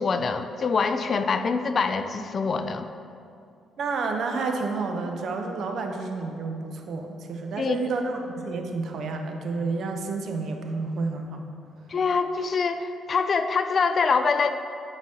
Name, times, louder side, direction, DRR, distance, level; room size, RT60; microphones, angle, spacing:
voice 1, 0.0-2.9 7.6-7.8 11.9-14.5, left 5 dB, 45° left, 9 dB, 0.4 m, -24 dB
voice 2, 3.8-11.4, right 3 dB, 65° right, 4 dB, 0.7 m, -30 dB
9.6 x 5.0 x 2.8 m, 2.5 s
cardioid pair, 90°, 0 cm